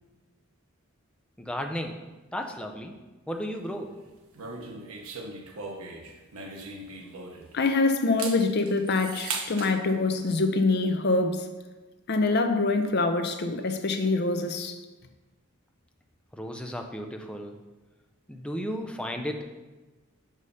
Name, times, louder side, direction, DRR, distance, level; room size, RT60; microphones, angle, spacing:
voice 1, 1.4-2.0 2.3-3.0 3.3-3.9 16.3-17.6 18.3-19.5, equal, 5° left, 4 dB, 0.5 m, -34 dB
sound 1, 4.4-7.6 8.0-9.7, right 4 dB, 85° right, 1.0 m, -38 dB
voice 2, 7.5-11.4 12.1-14.8, left 3 dB, 50° left, 7 dB, 0.6 m, -25 dB
5.4 x 4.9 x 5.5 m, 1.2 s
head